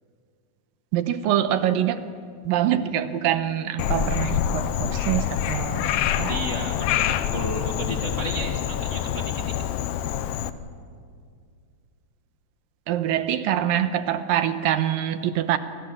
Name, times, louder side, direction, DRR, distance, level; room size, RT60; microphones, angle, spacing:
voice 1, 0.9-2.0 2.4-6.3 12.9-15.6, right 11 dB, 80° right, 10 dB, 2.7 m, -25 dB
Frog, 3.8-10.5, left 10 dB, 70° left, 2.3 m, -26 dB
voice 2, 6.3-9.5, equal, 30° left, 1 dB, 1.5 m, -33 dB
29.0 x 26.0 x 7.2 m, 2.2 s
omnidirectional pair, 4.1 m